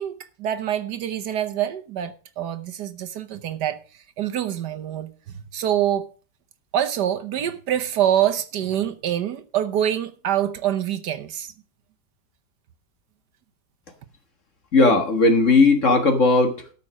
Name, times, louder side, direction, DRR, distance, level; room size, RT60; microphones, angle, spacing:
voice 1, 0.0-3.8 4.2-6.1 6.7-11.5, right 10 dB, 65° right, 1.4 m, -25 dB
voice 2, 14.7-16.7, left 3 dB, 45° left, 1.8 m, -17 dB
13.0 x 6.0 x 6.2 m
omnidirectional pair, 2.0 m